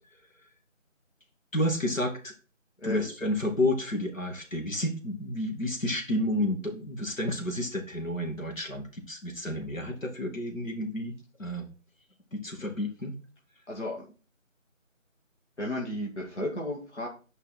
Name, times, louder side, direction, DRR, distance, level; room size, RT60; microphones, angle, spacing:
voice 1, 1.5-2.3 2.8-11.1 11.4-11.7 12.3-13.1, left 1 dB, 75° left, 2 dB, 2.6 m, -30 dB
voice 2, 2.8-3.1 13.7-14.1 15.6-17.1, left 1 dB, 60° left, -2 dB, 2.1 m, -33 dB
8.8 x 5.3 x 4.4 m, 0.36 s
figure-of-eight pair, 175°, 40 cm